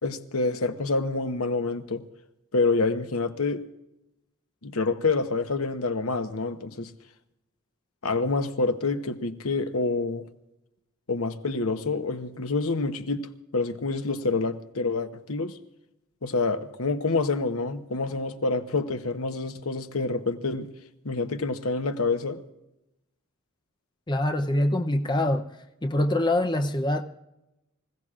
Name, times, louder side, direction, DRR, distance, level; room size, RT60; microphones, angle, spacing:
voice 1, 0.0-2.0 2.5-3.6 4.6-6.9 8.0-10.3 11.1-15.6 16.2-20.7 21.0-22.4, left 3 dB, 85° left, 1.0 m, -27 dB
voice 2, 24.1-25.5 25.8-27.0, left 1 dB, 20° left, 0.7 m, -24 dB
25.5 x 16.5 x 2.5 m
head